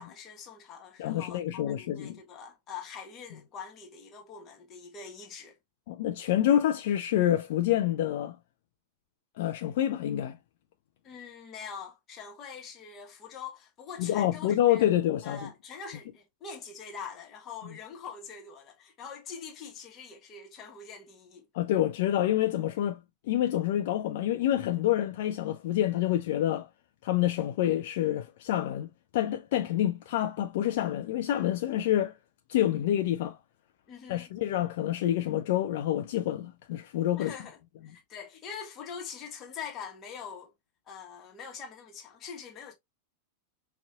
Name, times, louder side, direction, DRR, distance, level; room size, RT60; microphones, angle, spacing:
voice 1, 0.0-5.6 11.0-14.9 15.2-21.5 33.9-34.3 37.2-37.6 37.8-40.5 40.9-42.7, left 6 dB, 30° left, 1.1 m, -44 dB
voice 2, 1.0-2.2 5.9-8.4 9.4-10.4 14.0-15.5 21.5-26.7 27.0-32.2 32.5-33.4 34.1-37.4, left 12 dB, 55° left, 0.4 m, -27 dB
5.3 x 2.4 x 2.3 m
figure-of-eight pair, 90°, 0 cm